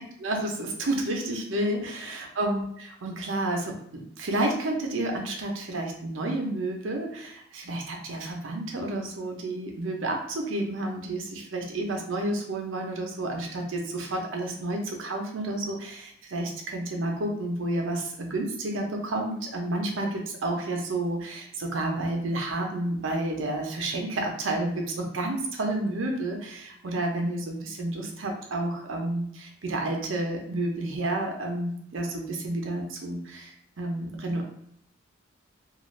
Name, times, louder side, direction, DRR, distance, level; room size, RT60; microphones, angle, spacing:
voice 1, 0.2-34.5, right 1 dB, 75° right, 2 dB, 0.6 m, -30 dB
2.4 x 2.3 x 3.1 m, 0.70 s
head